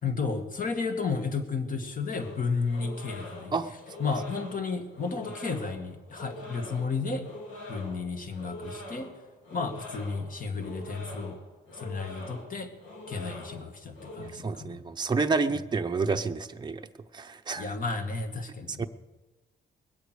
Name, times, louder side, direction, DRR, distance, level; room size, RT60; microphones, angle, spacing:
voice 1, 0.0-3.6 4.0-7.3 7.7-9.1 9.5-11.4 11.7-12.7 13.1-14.8 15.5-15.6 17.5-18.9, left 4 dB, 45° left, 5 dB, 2.1 m, -32 dB
sound 1, 2.2-14.3, left 1 dB, 75° left, 3.3 m, -44 dB
voice 2, 14.2-16.8 17.1-17.6 18.8-18.9, right 4 dB, 20° right, 6 dB, 0.8 m, -29 dB
21.5 x 8.3 x 6.5 m, 1.2 s
cardioid pair, 90°, 20 cm